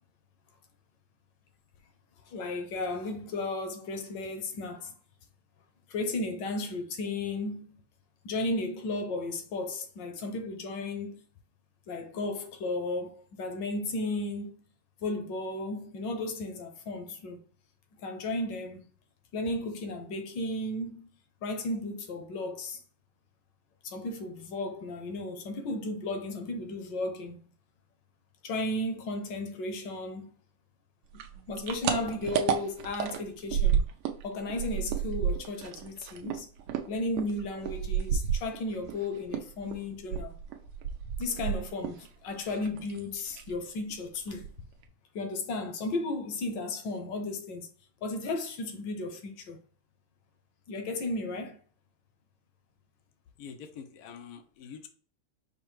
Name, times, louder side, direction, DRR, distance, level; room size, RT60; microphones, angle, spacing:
voice 1, 2.3-4.9 5.9-7.8 8.2-11.2 11.9-14.6 15.0-17.4 18.0-18.9 19.3-21.1 21.4-22.8 23.8-27.5 28.4-30.3 31.5-33.9 34.2-36.5 36.9-40.4 41.2-44.5 45.1-47.7 48.0-49.6 50.7-51.6, left 2 dB, 65° left, 1.2 m, -34 dB
sound 1, 31.2-34.2 34.5-39.0 39.3-42.1 42.3-43.0 43.3-43.6 43.9-44.0 44.3-44.8, right 8 dB, 90° right, 1.6 m, -31 dB
voice 2, 53.4-54.9, left 7 dB, 90° left, 0.8 m, -45 dB
5.4 x 2.1 x 4.6 m
omnidirectional pair, 2.4 m